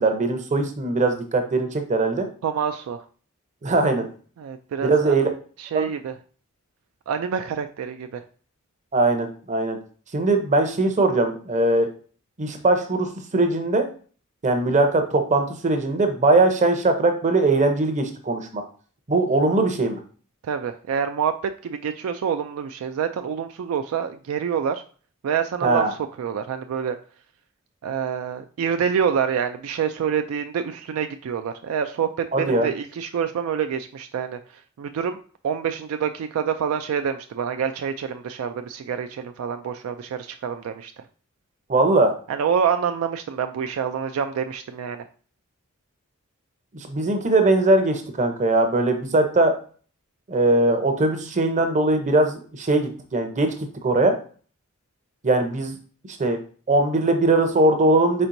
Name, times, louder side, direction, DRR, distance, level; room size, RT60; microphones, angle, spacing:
voice 1, 0.0-2.3 3.6-4.1 4.8-5.3 5.7-5.9 8.9-9.8 10.1-11.9 12.4-13.9 14.4-18.6 19.1-20.0 25.6-25.9 32.3-32.7 41.7-42.1 46.7-49.6 50.3-53.5 53.8-54.2 55.2-55.8 56.2-56.4 56.7-58.3, right 2 dB, 35° right, 5 dB, 0.7 m, -20 dB
voice 2, 2.4-3.0 4.4-5.2 5.6-6.2 7.1-8.2 20.4-24.8 25.2-27.0 27.8-35.2 35.4-41.0 42.3-45.0, right 7 dB, 70° right, 8 dB, 0.3 m, -27 dB
4.4 x 4.3 x 2.6 m, 0.42 s
head